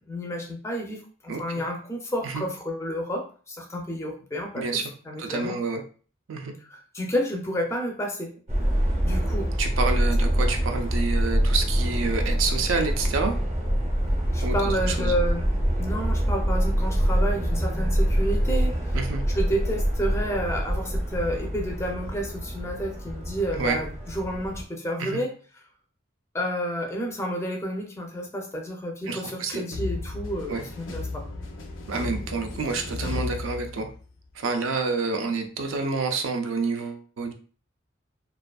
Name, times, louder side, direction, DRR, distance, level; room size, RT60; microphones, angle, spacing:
voice 1, 0.1-5.6 6.7-8.3 9.0-9.5 14.3-19.0 19.3-25.3 26.3-31.2, equal, 15° left, 2 dB, 0.4 m, -30 dB
voice 2, 4.5-4.9 5.2-5.8 6.3-6.5 9.6-13.4 14.4-15.2 18.9-19.2 23.5-23.8 25.0-25.2 29.1-29.6 30.5-30.7 31.9-33.9 34.3-37.3, right 4 dB, 85° right, 5 dB, 0.4 m, -28 dB
Subway metro underground, 8.5-24.6, equal, 35° right, 0.7 m, -25 dB
sound 1, 29.7-34.2, left 3 dB, 75° left, 0.5 m, -34 dB
2.5 x 2.3 x 2.3 m, 0.40 s
head